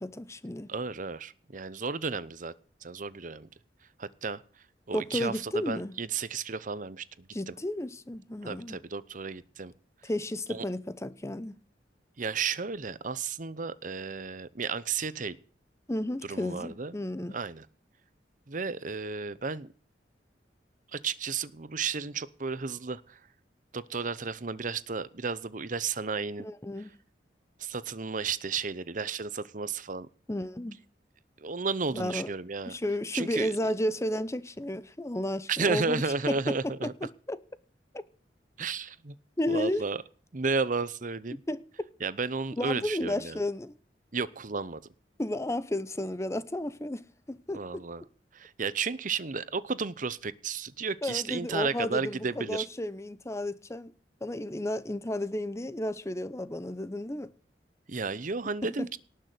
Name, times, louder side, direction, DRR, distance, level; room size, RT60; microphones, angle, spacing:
voice 1, 0.0-0.7 4.9-6.0 7.3-8.8 10.0-11.6 15.9-17.4 26.4-26.9 30.3-30.8 31.9-32.3 32.7-36.6 36.8-36.9 37.3-37.4 39.4-39.8 41.5-41.6 42.6-43.8 45.2-47.8 51.0-53.9 54.2-57.3 58.6-58.9, left 1 dB, 15° left, 0.8 m, -33 dB
voice 2, 0.7-2.5 2.8-3.5 4.0-4.4 4.9-7.5 8.4-9.7 10.5-10.6 12.2-15.4 16.3-16.9 17.3-17.6 18.5-19.7 20.9-23.2 23.7-26.5 27.6-30.1 31.4-32.8 33.1-33.5 35.5-36.9 38.6-39.2 39.5-40.0 40.3-41.4 42.0-43.4 44.1-44.8 47.5-48.0 48.3-52.7 57.9-59.0, right 5 dB, 45° right, 0.8 m, -33 dB
18.5 x 6.7 x 7.8 m
head